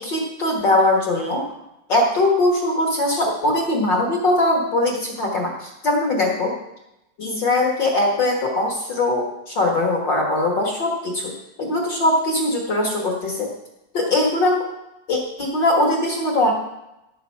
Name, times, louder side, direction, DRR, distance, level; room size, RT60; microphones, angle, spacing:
voice 1, 0.0-1.4 1.9-6.5 7.2-11.3 11.6-13.5 13.9-14.6 15.1-16.5, left 2 dB, 40° left, -1 dB, 1.9 m, -21 dB
17.0 x 6.7 x 4.7 m, 0.90 s
omnidirectional pair, 3.9 m